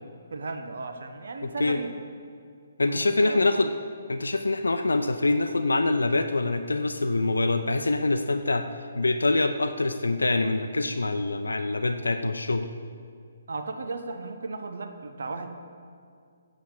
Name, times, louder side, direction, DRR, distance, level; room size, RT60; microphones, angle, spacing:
voice 1, 0.3-1.9 2.9-3.4 13.5-15.5, right 3 dB, 65° right, 6 dB, 0.9 m, -35 dB
voice 2, 2.8-3.7 4.1-8.7 8.9-12.7, left 2 dB, 80° left, 7 dB, 0.5 m, -25 dB
8.6 x 7.3 x 7.3 m, 2.3 s
figure-of-eight pair, 140°, 0 cm